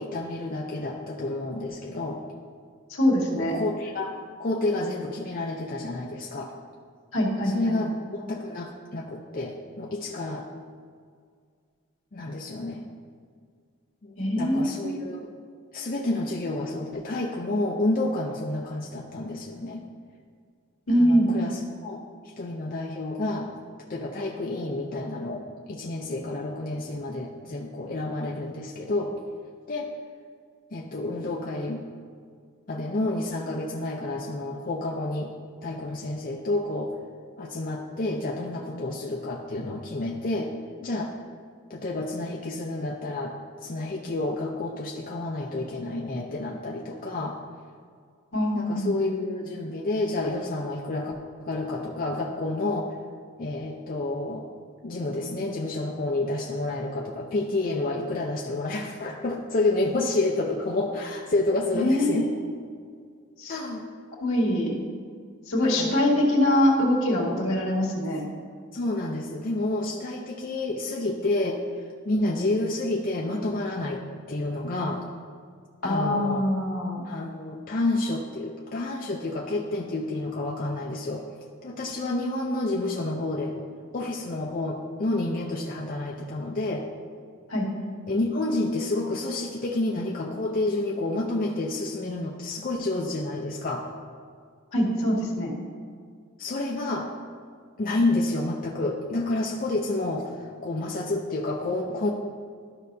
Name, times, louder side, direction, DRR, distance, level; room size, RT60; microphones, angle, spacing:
voice 1, 0.0-2.2 3.4-4.1 4.4-6.5 7.5-7.9 8.2-10.5 12.1-12.8 14.0-15.3 15.7-19.8 20.9-22.0 22.4-23.5 23.9-29.1 29.7-29.9 30.7-31.8 32.7-35.3 35.6-36.9 37.4-40.5 40.8-41.1 41.7-43.4 43.6-47.4 48.5-51.1 51.4-52.9 53.4-54.5 54.8-62.3 63.5-63.8 65.6-65.9 68.7-71.6 72.0-74.0 74.3-75.0 75.8-76.5 77.0-81.2 81.6-83.6 83.9-86.9 88.1-93.9 96.4-97.1 97.8-102.1, left 2 dB, 40° left, -1 dB, 0.5 m, -29 dB
voice 2, 2.9-3.5 7.1-7.8 14.2-15.0 20.9-21.3 48.3-49.0 61.7-62.5 63.4-63.6 64.2-64.7 65.5-68.2 75.8-77.0 87.5-87.7 94.7-95.5, left 1 dB, 75° left, -2 dB, 1.7 m, -24 dB
12.5 x 5.3 x 2.6 m, 2.1 s
head